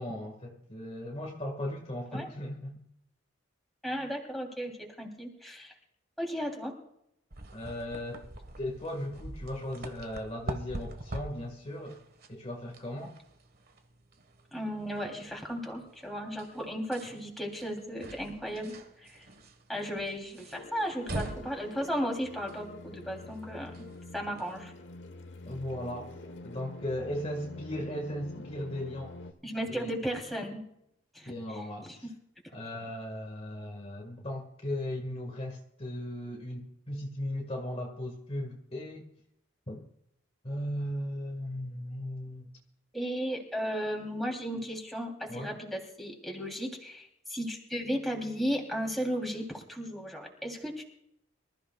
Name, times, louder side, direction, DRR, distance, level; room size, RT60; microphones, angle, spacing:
voice 1, 0.0-2.8 7.5-8.3 8.6-12.0 12.3-13.1 25.5-26.2 26.4-29.2 29.7-29.9 31.3-32.1 32.5-39.1 39.7-39.8 40.4-42.5 45.3-45.6, left 1 dB, 30° left, 1 dB, 1.8 m, -37 dB
voice 2, 3.8-5.7 6.2-6.7 14.5-19.3 19.7-23.8 24.1-24.7 29.4-30.6 31.1-31.3 42.9-50.8, equal, ahead, 0 dB, 3.3 m, -35 dB
sound 1, 7.3-24.6, right 1 dB, 50° right, 1.5 m, -44 dB
sound 2, 20.5-29.3, left 2 dB, 65° left, 1.3 m, -47 dB
25.5 x 14.5 x 2.4 m, 0.76 s
head